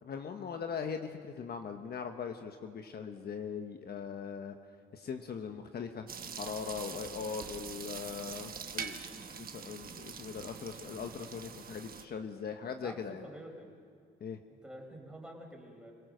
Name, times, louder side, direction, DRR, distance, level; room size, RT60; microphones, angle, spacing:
voice 1, 0.0-4.6 4.9-6.1 6.4-13.2 14.2-14.4, left 6 dB, 55° left, 6 dB, 1.2 m, -40 dB
sound 1, 6.1-12.1, right 7 dB, 45° right, 1.2 m, -44 dB
voice 2, 12.8-13.7 14.6-15.9, right 1 dB, 5° right, 0 dB, 4.7 m, -48 dB
26.0 x 17.5 x 6.5 m, 2.2 s
cardioid pair, 90°, 20 cm